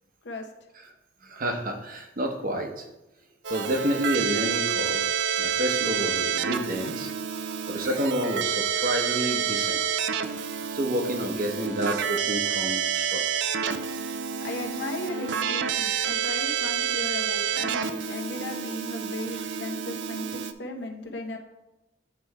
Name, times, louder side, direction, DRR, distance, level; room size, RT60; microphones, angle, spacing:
voice 1, 1.2-2.9 3.5-5.1 5.4-7.1 7.7-10.0 10.7-13.4, right 1 dB, 50° right, 4 dB, 0.9 m, -29 dB
Keyboard (musical), 3.4-20.5, right 7 dB, 70° right, 0.4 m, -29 dB
voice 2, 11.3-11.8 14.4-21.4, left 2 dB, 70° left, 3 dB, 0.9 m, -36 dB
8.5 x 3.3 x 4.6 m, 0.96 s
head